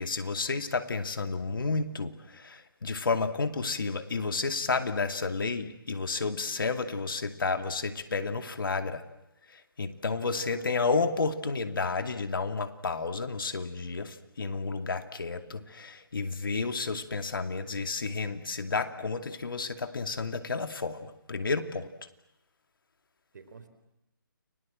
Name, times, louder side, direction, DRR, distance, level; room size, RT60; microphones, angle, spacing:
voice 1, 0.0-9.0 9.8-21.9, left 4 dB, 70° left, 8 dB, 2.4 m, -31 dB
voice 2, 1.1-1.9 10.1-10.9 23.3-23.7, right 5 dB, 55° right, 10 dB, 4.3 m, -50 dB
30.0 x 23.0 x 7.7 m, 0.88 s
hypercardioid pair, 155°, 12 cm